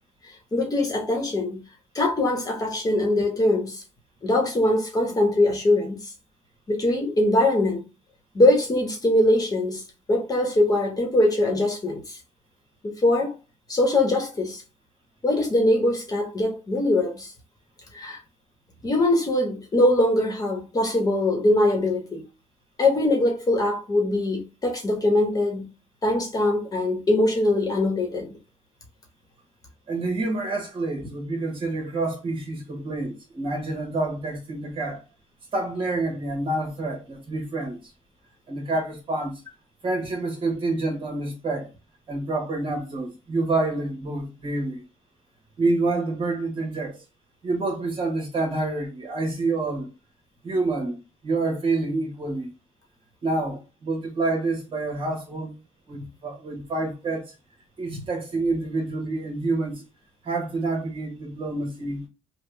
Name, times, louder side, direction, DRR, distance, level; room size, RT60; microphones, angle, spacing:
voice 1, 0.5-1.6 1.9-3.8 4.2-6.0 6.7-7.8 8.3-9.8 10.1-12.2 12.8-13.4 13.7-14.6 15.2-17.3 17.9-18.2 18.8-22.2 22.8-25.6 26.0-28.3 57.9-58.0, left 1 dB, 30° left, 1.2 m, -22 dB
voice 2, 29.9-35.0 35.5-37.8 38.5-39.4 39.8-41.7 42.1-44.8 45.6-47.0 47.4-49.9 50.4-52.5 53.2-55.5 55.9-57.3 57.8-59.8 60.2-62.1, right 2 dB, 40° right, 1.5 m, -28 dB
3.5 x 2.3 x 3.3 m
cardioid pair, 110°, 13 cm